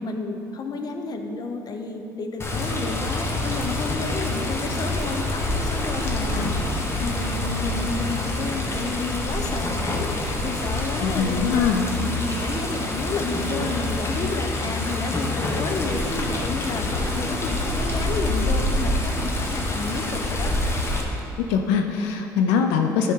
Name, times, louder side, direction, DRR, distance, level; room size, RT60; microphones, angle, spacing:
voice 1, 0.0-20.5, left 3 dB, 50° left, 5 dB, 0.8 m, -31 dB
Water, 2.4-21.0, left 2 dB, 30° left, 1.2 m, -26 dB
voice 2, 11.0-11.8 21.4-23.1, left 6 dB, 85° left, 5 dB, 0.5 m, -23 dB
9.6 x 5.5 x 3.7 m, 2.8 s
supercardioid pair, 70°, 9 cm